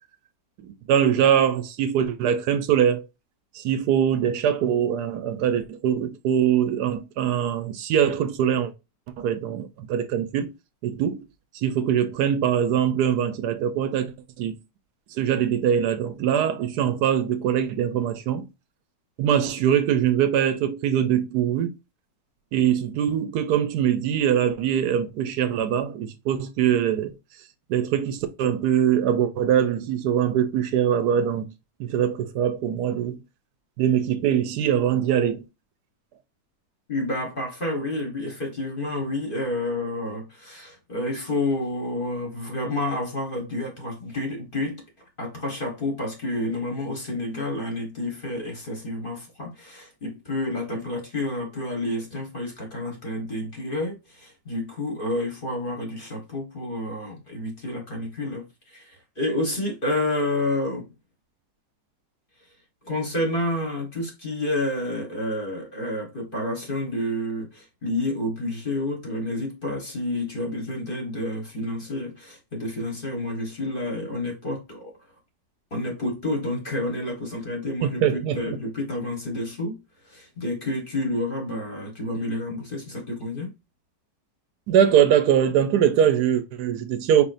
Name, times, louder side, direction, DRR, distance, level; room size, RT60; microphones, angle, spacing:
voice 1, 0.6-3.1 3.5-8.7 9.2-10.5 10.8-11.2 11.5-14.6 15.1-18.5 19.2-21.7 22.5-27.1 27.7-31.5 31.8-33.2 33.8-35.4 77.8-78.6 84.7-87.2, right 9 dB, 70° right, 1.1 m, -22 dB
voice 2, 36.9-44.8 45.2-60.9 62.8-74.9 75.7-79.8 80.0-83.5, left 1 dB, 35° left, 1.2 m, -29 dB
4.9 x 3.5 x 2.5 m
omnidirectional pair, 1.9 m